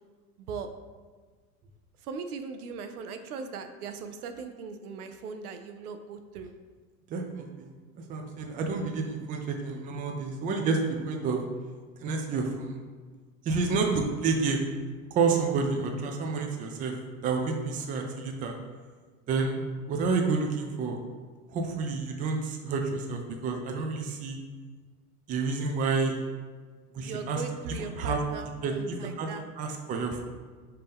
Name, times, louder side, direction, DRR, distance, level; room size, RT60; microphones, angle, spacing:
voice 1, 0.4-0.7 2.0-6.5 27.0-29.4, right 4 dB, 80° right, 8 dB, 0.6 m, -38 dB
voice 2, 7.1-7.7 8.1-10.8 11.1-11.4 12.0-12.8 13.4-14.6 15.1-16.9 17.2-18.6 19.3-21.0 21.5-24.4 25.3-26.2 26.9-27.4 28.0-28.2 28.6-29.3 29.6-30.2, right 4 dB, 20° right, 3 dB, 0.4 m, -29 dB
5.1 x 2.8 x 3.6 m, 1.5 s
hypercardioid pair, 105°, 44 cm